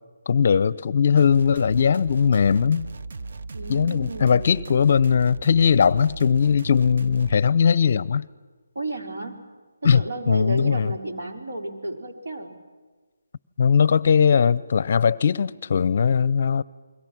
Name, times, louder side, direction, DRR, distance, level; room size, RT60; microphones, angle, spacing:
voice 1, 0.3-2.9 3.7-8.3 9.8-11.0 13.6-16.6, left 6 dB, 45° left, 0.6 m, -19 dB
sound 1, 1.2-7.4, right 3 dB, 50° right, 0.7 m, -36 dB
voice 2, 3.5-4.6 8.7-9.4 9.8-12.6, right 2 dB, 70° right, 4.2 m, -32 dB
29.5 x 22.0 x 6.1 m
figure-of-eight pair, 160°, 0 cm